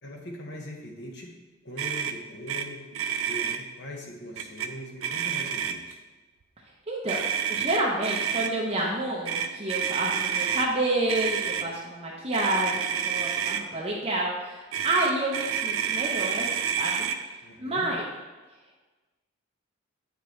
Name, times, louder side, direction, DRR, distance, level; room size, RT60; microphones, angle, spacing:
voice 1, 0.0-1.3 1.6-2.8 3.3-6.0 17.4-17.9, left 1 dB, 55° left, 0 dB, 1.0 m, -41 dB
Motor vehicle (road), 1.8-2.1 2.5-2.6 2.9-3.6 4.4-4.7 5.0-5.9 7.1-8.5 9.2-10.7 11.1-11.7 12.3-13.6 14.7-17.2, right 8 dB, 90° right, 0.5 m, -29 dB
voice 2, 6.9-7.2 7.5-12.8 13.0-16.5 16.8-17.1 17.6-18.0, right 1 dB, 30° right, -3 dB, 0.7 m, -29 dB
8.1 x 4.7 x 3.1 m, 1.2 s
head